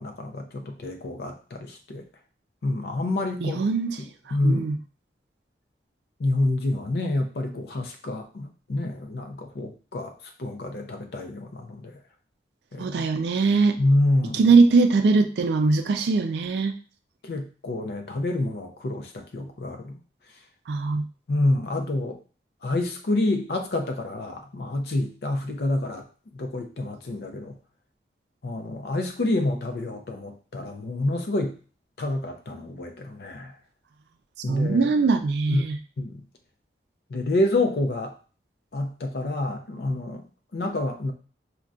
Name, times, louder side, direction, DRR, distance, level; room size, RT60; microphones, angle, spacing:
voice 1, 0.0-2.0 2.6-3.6 4.0-4.7 6.2-12.0 12.7-13.1 13.8-14.5 17.2-20.0 21.3-22.2 22.6-26.1 26.3-27.6 28.4-31.6 32.0-33.5 34.4-34.9 35.5-35.7 36.0-36.2 37.1-38.2 38.7-40.3 40.5-41.1, left 2 dB, 65° left, 5 dB, 0.4 m, -28 dB
voice 2, 3.4-4.0 4.4-4.8 12.8-13.8 14.3-16.7 20.7-21.1 34.5-35.8, right 4 dB, 70° right, 7 dB, 0.3 m, -21 dB
3.7 x 2.2 x 2.3 m, 0.38 s
head